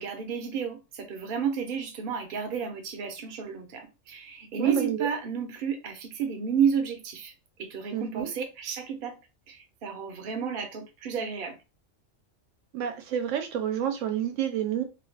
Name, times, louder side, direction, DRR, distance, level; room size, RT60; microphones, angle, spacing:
voice 1, 0.0-7.3 7.6-9.2 9.5-11.6, right 7 dB, 50° right, 0.8 m, -31 dB
voice 2, 4.6-5.1 7.9-8.3 12.7-14.8, right 9 dB, 80° right, 0.9 m, -29 dB
2.8 x 2.3 x 3.2 m
omnidirectional pair, 1.3 m